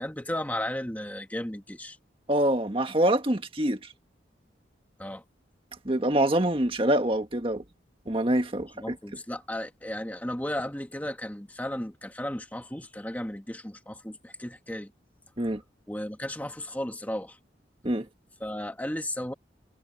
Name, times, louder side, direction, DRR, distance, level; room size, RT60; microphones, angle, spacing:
voice 1, 0.0-2.0 5.0-5.2 8.8-14.9 15.9-17.4 18.4-19.3, left 1 dB, 10° left, 1.6 m, -34 dB
voice 2, 2.3-3.8 5.9-7.6 8.1-9.0 15.4-15.6 17.8-18.1, right 1 dB, 30° right, 1.8 m, -25 dB
head